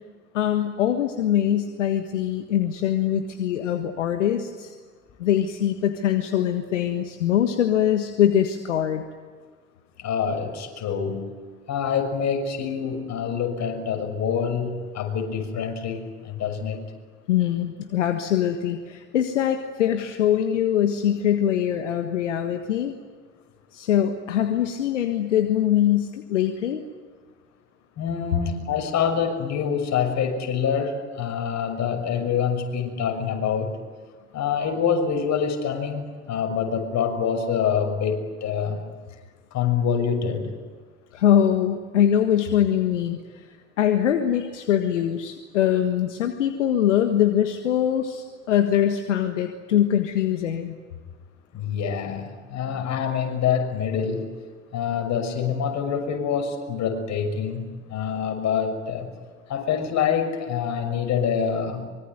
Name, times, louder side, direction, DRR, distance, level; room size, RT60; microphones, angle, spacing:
voice 1, 0.3-4.8 5.2-9.0 17.3-22.9 23.7-26.8 41.1-50.8, left 10 dB, 75° left, 7 dB, 1.6 m, -23 dB
voice 2, 10.0-11.3 11.7-16.8 28.0-33.7 34.3-38.8 39.5-40.5 51.5-54.3 54.7-59.1 59.5-61.8, left 7 dB, 50° left, 5 dB, 6.4 m, -26 dB
24.5 x 24.0 x 9.5 m, 1.5 s
figure-of-eight pair, 65°, 37 cm